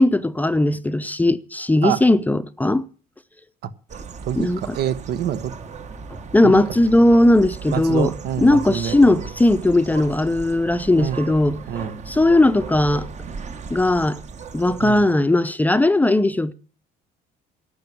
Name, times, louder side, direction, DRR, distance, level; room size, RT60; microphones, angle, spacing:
voice 1, 0.0-2.8 4.3-4.8 6.3-8.1 8.4-13.1 13.7-14.2 14.5-16.5, left 1 dB, 10° left, 0.6 m, -18 dB
sound 1, 3.9-15.2, right 5 dB, 45° right, 1.5 m, -36 dB
voice 2, 4.3-5.5 6.4-6.6 7.7-9.3 11.0-11.2 11.7-12.0 14.8-15.1, right 9 dB, 70° right, 1.1 m, -26 dB
11.5 x 7.7 x 9.2 m
cardioid pair, 110°, 17 cm